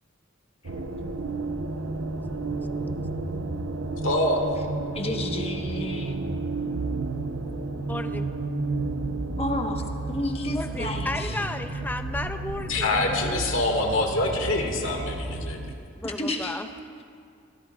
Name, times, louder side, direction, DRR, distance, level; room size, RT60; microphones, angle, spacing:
sound 1, 0.6-15.8, right 3 dB, 85° right, 0.8 m, -31 dB
voice 1, 4.0-4.6 12.7-15.6, left 2 dB, 75° left, 1 dB, 2.0 m, -25 dB
voice 2, 4.9-6.1 9.4-9.8 10.1-11.4 16.0-16.6, left 1 dB, 30° left, 2 dB, 1.3 m, -31 dB
voice 3, 7.9-8.3 10.5-13.4 16.0-16.7, left 1 dB, 10° left, 8 dB, 0.5 m, -34 dB
27.0 x 15.5 x 2.4 m, 2.4 s
head